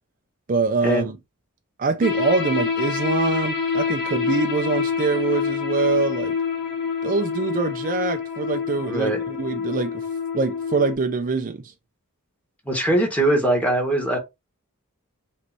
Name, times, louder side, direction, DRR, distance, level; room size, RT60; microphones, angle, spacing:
voice 1, 0.5-1.2 1.8-6.4 7.0-10.1 10.3-11.7, right 4 dB, 40° right, 0.5 m, -24 dB
sound 1, 2.0-10.9, left 6 dB, 50° left, 1.9 m, -26 dB
voice 2, 8.8-9.2 12.6-14.2, right 1 dB, 5° left, 1.5 m, -21 dB
5.1 x 3.2 x 2.8 m
head